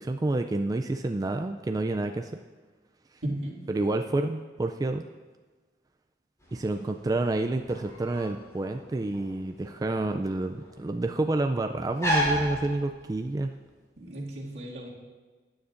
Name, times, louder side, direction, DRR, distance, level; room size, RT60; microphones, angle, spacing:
voice 1, 0.0-2.3 3.7-5.0 6.5-13.5, right 2 dB, 20° right, 5 dB, 0.3 m, -29 dB
voice 2, 3.2-3.7 14.0-14.9, right 1 dB, 75° right, -4 dB, 2.2 m, -35 dB
sound 1, 6.4-13.4, equal, 20° left, 3.6 m, -34 dB
15.5 x 9.5 x 2.5 m, 1.4 s
head